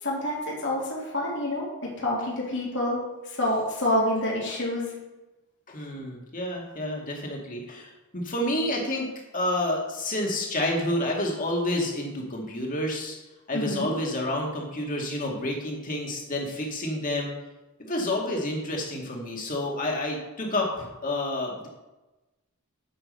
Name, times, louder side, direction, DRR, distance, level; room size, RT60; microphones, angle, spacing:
voice 1, 0.0-1.7 2.0-4.9 13.5-13.9, left 1 dB, 55° left, -4 dB, 3.0 m, -28 dB
voice 2, 5.7-9.1 9.3-13.2 13.5-17.3 17.9-21.7, left 1 dB, 40° left, -1 dB, 2.2 m, -29 dB
8.9 x 6.2 x 6.7 m, 1.1 s
head